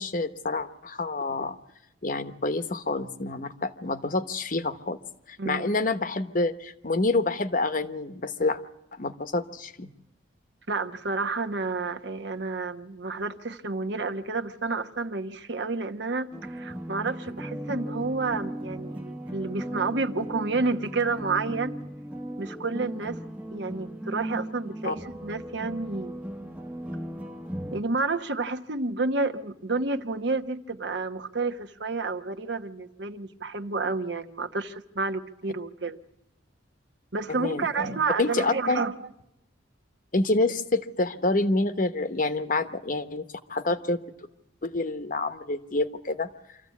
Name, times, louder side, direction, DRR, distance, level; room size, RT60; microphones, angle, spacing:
voice 1, 0.0-1.6 2.0-5.0 5.3-8.6 8.9-9.9 24.8-24.9 37.4-38.8 40.1-44.0 44.6-46.3, left 2 dB, 45° left, 11 dB, 1.0 m, -27 dB
voice 2, 10.7-21.7 22.4-23.2 23.5-26.2 27.7-36.0 37.1-38.9, right 3 dB, 60° right, 7 dB, 1.1 m, -30 dB
sound 1, 16.3-27.8, right 1 dB, 5° right, 0.9 m, -37 dB
25.5 x 14.5 x 8.4 m, 0.89 s
head